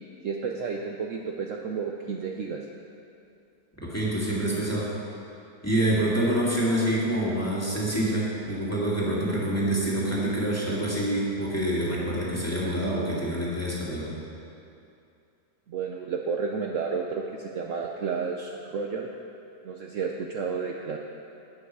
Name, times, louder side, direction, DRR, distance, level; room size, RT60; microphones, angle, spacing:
voice 1, 0.2-2.6 15.7-19.1 19.6-21.0, right 5 dB, 65° right, 1 dB, 0.9 m, -31 dB
voice 2, 3.8-4.9 5.6-14.1, right 1 dB, 10° left, -6 dB, 2.2 m, -26 dB
12.0 x 9.6 x 4.8 m, 2.6 s
omnidirectional pair, 1.7 m